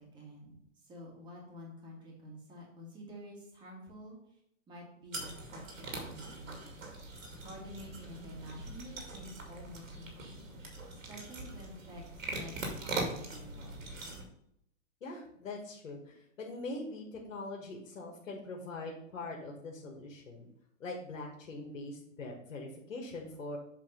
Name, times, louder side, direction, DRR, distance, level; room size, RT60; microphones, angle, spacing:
voice 1, 0.0-4.4 4.7-6.8 7.4-13.8, equal, 10° right, -2 dB, 1.7 m, -50 dB
sound 1, 5.1-14.2, right 2 dB, 85° right, 2.4 m, -42 dB
voice 2, 15.0-20.5 20.8-23.6, left 2 dB, 80° left, 1 dB, 1.8 m, -42 dB
7.5 x 3.5 x 5.2 m, 0.75 s
hypercardioid pair, 150°, 39 cm